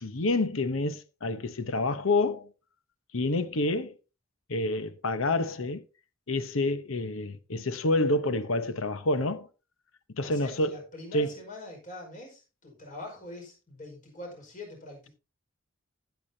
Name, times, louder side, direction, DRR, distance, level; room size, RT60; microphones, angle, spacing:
voice 1, 0.0-2.5 3.1-3.9 4.5-5.8 6.3-9.5 10.2-10.8 11.1-11.3, left 2 dB, 85° left, 1.0 m, -28 dB
voice 2, 10.2-15.1, left 2 dB, 40° left, 5.1 m, -44 dB
15.5 x 8.3 x 2.8 m
head